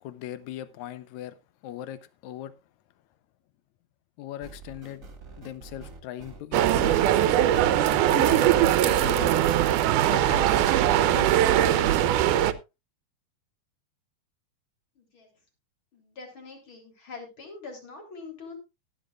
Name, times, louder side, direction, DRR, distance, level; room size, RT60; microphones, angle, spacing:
voice 1, 0.0-1.4 1.6-2.5 4.2-5.1 5.4-6.9 7.9-9.4 10.0-12.2, left 13 dB, 70° left, 2.2 m, -39 dB
sound 1, 4.4-11.1, right 4 dB, 30° right, 2.1 m, -46 dB
sound 2, 6.5-12.5, right 12 dB, 85° right, 2.3 m, -21 dB
voice 2, 15.0-15.3 15.9-18.6, left 4 dB, 40° left, 4.2 m, -44 dB
17.5 x 10.0 x 2.4 m
omnidirectional pair, 3.6 m